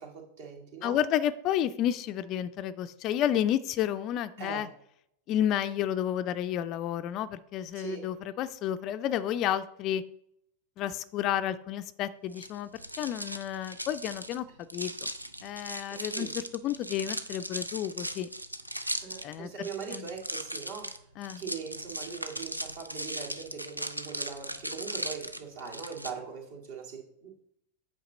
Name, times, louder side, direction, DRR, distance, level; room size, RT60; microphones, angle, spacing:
voice 1, 0.0-1.0 4.4-4.7 7.7-8.0 15.9-16.3 19.0-21.0 21.4-27.3, right 6 dB, 55° right, 0 dB, 2.1 m, -41 dB
voice 2, 0.8-4.7 5.3-10.0 10.8-14.5 14.7-14.9 15.4-18.3 19.2-20.1 21.2-21.4, left 11 dB, 35° left, 13 dB, 0.4 m, -31 dB
sound 1, 12.3-26.1, right 1 dB, 85° right, 0.5 m, -38 dB
8.6 x 5.2 x 4.1 m, 0.73 s
figure-of-eight pair, 90°, 0 cm